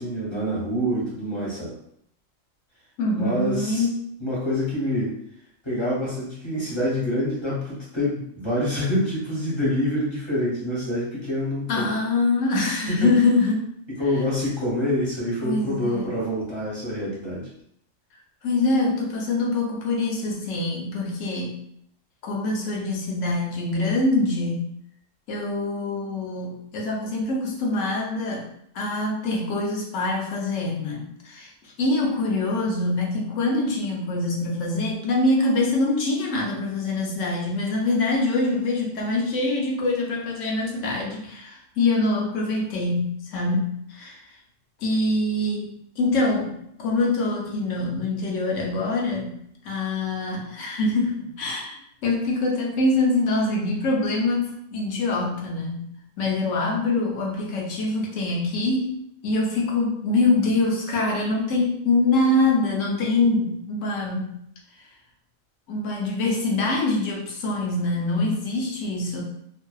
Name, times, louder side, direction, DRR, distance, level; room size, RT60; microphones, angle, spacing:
voice 1, 0.0-1.7 3.1-3.9 4.2-5.1 5.6-11.9 12.9-13.2 13.9-17.5, equal, 25° left, -7 dB, 0.7 m, -26 dB
voice 2, 3.0-4.0 11.7-13.7 15.4-16.1 18.4-21.5 22.2-24.7 25.3-28.5 28.7-31.5 31.8-44.2 44.8-49.3 49.6-55.8 56.2-58.9 59.2-64.3 65.7-69.2, left 2 dB, 70° left, -1 dB, 0.9 m, -24 dB
2.6 x 2.1 x 2.3 m, 0.72 s
omnidirectional pair, 1.4 m